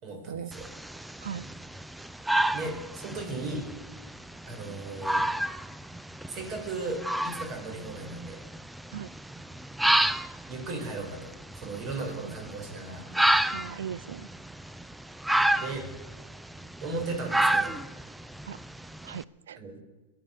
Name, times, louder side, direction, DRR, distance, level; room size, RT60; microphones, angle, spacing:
voice 1, 0.0-0.7 2.5-3.7 4.4-5.3 6.3-8.4 10.5-13.1 15.6-15.9 16.8-17.7 19.6-19.8, right 3 dB, 40° right, 5.2 m, -36 dB
sound 1, 0.5-19.2, right 1 dB, 5° right, 0.5 m, -30 dB
voice 2, 13.5-14.3 18.4-18.6 19.0-19.6, right 8 dB, 85° right, 0.5 m, -38 dB
21.5 x 7.8 x 6.8 m
hypercardioid pair, 120°, 0 cm